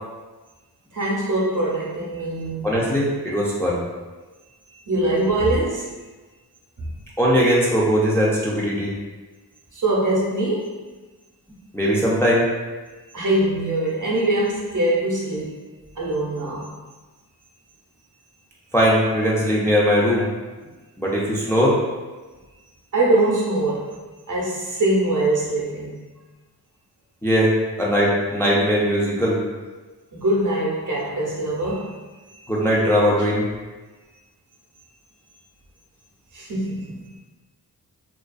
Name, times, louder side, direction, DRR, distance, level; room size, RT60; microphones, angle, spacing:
voice 1, 0.9-2.6 4.9-5.9 9.7-10.7 13.1-15.6 16.0-16.7 22.9-23.9 24.3-26.0 30.1-32.0 33.2-33.3 36.3-37.1, right 1 dB, 45° right, -5 dB, 0.8 m, -23 dB
voice 2, 2.6-3.8 7.2-8.9 11.7-12.5 18.7-20.3 21.0-21.8 27.2-29.4 32.5-33.5, equal, 5° left, -5 dB, 0.5 m, -19 dB
2.5 x 2.3 x 2.3 m, 1.3 s
cardioid pair, 45°, 41 cm